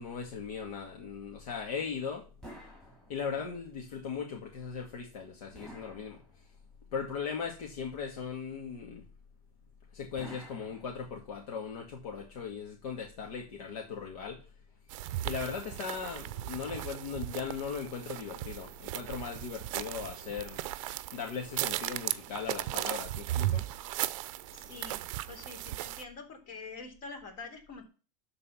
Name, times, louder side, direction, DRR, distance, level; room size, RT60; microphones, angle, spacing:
voice 1, 0.0-2.3 3.1-6.5 6.9-9.1 9.9-14.5 15.1-20.8 21.1-23.7 24.6-24.7, left 6 dB, 65° left, 2.2 m, -38 dB
sound 1, 2.4-3.6 5.5-6.8 10.2-11.5, right 1 dB, 5° left, 3.1 m, -51 dB
sound 2, 14.9-26.0, right 15 dB, 55° right, 0.6 m, -36 dB
voice 2, 24.5-25.0 25.3-27.9, left 4 dB, 40° left, 3.5 m, -45 dB
12.5 x 4.2 x 5.7 m
supercardioid pair, 145°, 19 cm